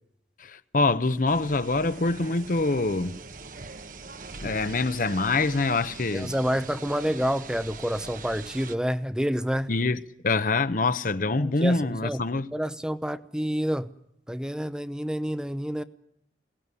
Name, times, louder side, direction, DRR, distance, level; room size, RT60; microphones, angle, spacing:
voice 1, 0.4-3.1 4.4-6.3 9.7-12.5, left 3 dB, 50° left, 0.9 m, -25 dB
sound 1, 1.3-8.8, right 4 dB, 50° right, 1.3 m, -42 dB
voice 2, 6.1-9.7 11.4-12.2 12.5-13.9 14.3-15.8, equal, 5° right, 0.8 m, -28 dB
22.5 x 17.5 x 9.8 m
head